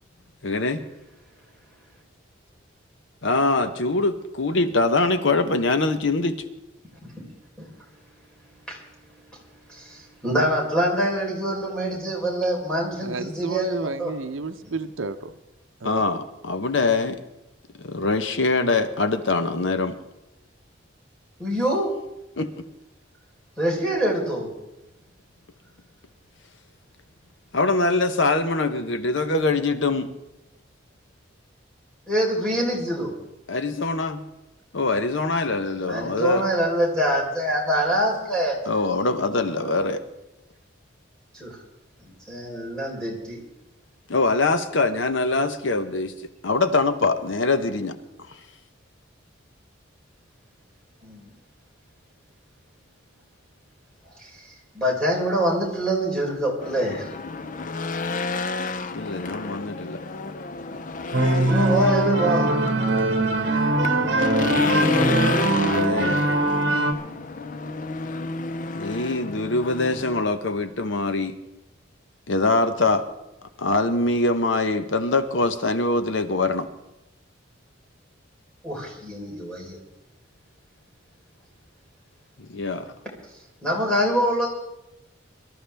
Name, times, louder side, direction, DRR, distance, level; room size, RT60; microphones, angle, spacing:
voice 1, 0.4-0.8 3.2-6.4 15.8-17.2 17.8-20.0 22.4-22.5 27.5-30.1 33.5-34.2 34.7-36.5 38.7-40.0 44.1-46.1 46.4-47.9 48.3-48.4 58.9-60.0 64.3-64.9 65.6-66.2 68.7-71.3 72.3-73.1 73.6-76.7 82.4-82.9, left 3 dB, 70° left, 10 dB, 0.9 m, -23 dB
voice 2, 10.2-14.1 14.6-14.7 21.4-21.9 23.6-24.5 32.1-33.1 35.8-38.8 39.6-39.9 41.3-41.6 42.0-43.4 51.0-51.2 54.2-54.3 54.7-57.1 61.3-62.5 78.6-79.8 83.6-84.5, equal, 5° left, -4 dB, 3.9 m, -25 dB
voice 3, 13.0-15.3 15.8-16.0, right 3 dB, 75° right, 9 dB, 0.7 m, -31 dB
Race car auto racing / Engine, 56.6-70.2, left 3 dB, 40° left, 0.5 m, -30 dB
sound 1, 61.1-66.9, right 2 dB, 55° right, 1.3 m, -22 dB
23.5 x 13.0 x 3.4 m, 0.93 s
head